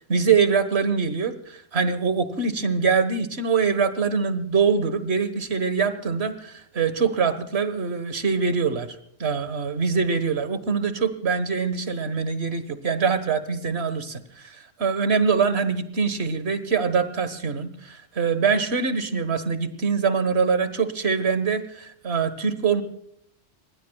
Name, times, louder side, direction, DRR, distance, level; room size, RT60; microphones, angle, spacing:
voice 1, 0.1-22.8, right 5 dB, 60° right, 12 dB, 1.7 m, -24 dB
25.5 x 20.5 x 2.3 m, 0.71 s
omnidirectional pair, 1.3 m